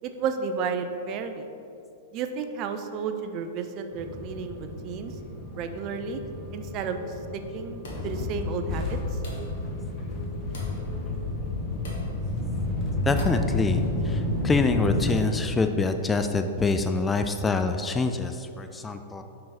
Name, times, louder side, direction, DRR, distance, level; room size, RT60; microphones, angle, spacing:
voice 1, 0.0-1.5 2.1-5.1 5.6-6.2 6.5-7.0 7.3-9.2, right 6 dB, 40° right, 7 dB, 0.5 m, -32 dB
sound 1, 3.9-15.2, left 1 dB, 30° left, 1.1 m, -31 dB
sound 2, 7.8-8.2 9.2-9.6 10.5-10.8 11.8-12.1 13.2-13.5, left 1 dB, 65° left, 1.5 m, -43 dB
voice 2, 13.1-19.2, left 3 dB, 15° left, 7 dB, 0.3 m, -26 dB
5.5 x 4.8 x 4.8 m, 2.8 s
hypercardioid pair, 105°, 0 cm